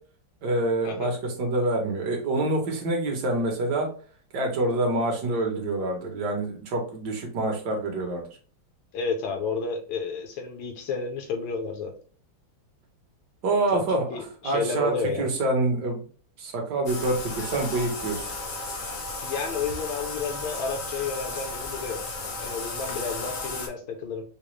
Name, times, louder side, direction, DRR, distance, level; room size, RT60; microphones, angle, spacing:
voice 1, 0.4-3.9 4.3-8.2 13.4-14.9 15.2-16.1 16.4-18.3, right 2 dB, 60° right, 1 dB, 1.5 m, -26 dB
voice 2, 8.9-11.9 13.7-13.8 14.1-15.3 19.2-22.0 22.4-24.2, left 5 dB, 75° left, 4 dB, 1.4 m, -31 dB
Bathtub (filling or washing), 16.9-23.7, left 3 dB, 55° left, 1.0 m, -34 dB
5.0 x 2.1 x 3.1 m, 0.41 s
omnidirectional pair, 2.3 m